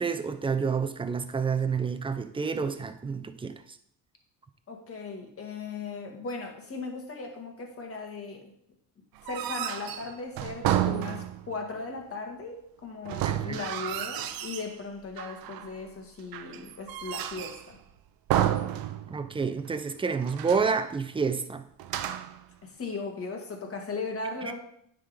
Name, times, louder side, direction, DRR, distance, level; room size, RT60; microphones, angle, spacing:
voice 1, 0.0-3.5 13.2-13.6 19.1-21.6 24.4-24.6, right 5 dB, 15° right, 0.6 m, -29 dB
voice 2, 4.7-8.5 9.2-17.8 22.6-24.6, left 4 dB, 40° left, 1.8 m, -37 dB
sound 1, 9.2-11.6 13.1-14.7 15.2-15.8 16.3-17.7 18.3-19.4 19.7-19.8 20.2-20.8 21.8-22.4, right 11 dB, 70° right, 0.7 m, -31 dB
9.2 x 3.9 x 5.0 m
cardioid pair, 95°, 37 cm